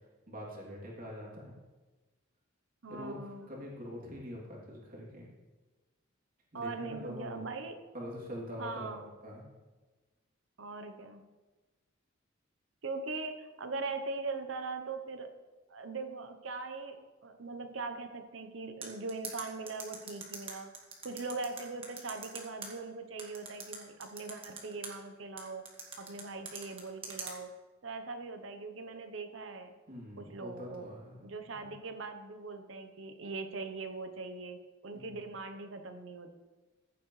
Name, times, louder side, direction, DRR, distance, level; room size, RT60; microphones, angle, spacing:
voice 1, 0.3-1.5 2.9-3.2 3.5-5.3 6.5-7.4 7.9-9.4 29.9-31.7 34.9-35.2, equal, 45° right, -4 dB, 2.9 m, -44 dB
voice 2, 2.8-3.5 6.5-7.8 8.6-9.1 10.6-11.2 12.8-15.3 15.7-20.7 21.0-25.6 26.0-27.5 27.8-29.7 30.2-30.9 31.2-36.4, right 3 dB, 70° right, 7 dB, 0.9 m, -41 dB
sound 1, 18.8-22.7 23.2-24.9 25.4-27.3, right 4 dB, 30° right, 1.6 m, -42 dB
15.0 x 8.4 x 3.2 m, 1.2 s
head